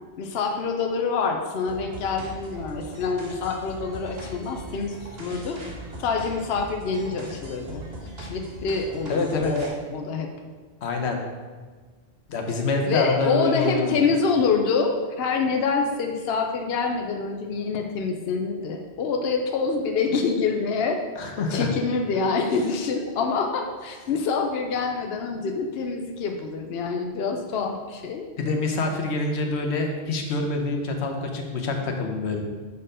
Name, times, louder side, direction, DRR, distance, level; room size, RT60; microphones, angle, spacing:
voice 1, 0.2-5.6 6.0-7.8 8.2-10.3 12.8-21.0 21.5-28.3, left 4 dB, 70° left, 4 dB, 0.9 m, -26 dB
sound 1, 1.7-9.7, right 1 dB, 65° right, 1.5 m, -40 dB
voice 2, 9.1-9.5 10.8-11.2 12.3-13.9 20.8-21.7 28.4-32.4, left 3 dB, 90° left, 3 dB, 1.1 m, -26 dB
6.8 x 4.4 x 5.0 m, 1.5 s
omnidirectional pair, 1.1 m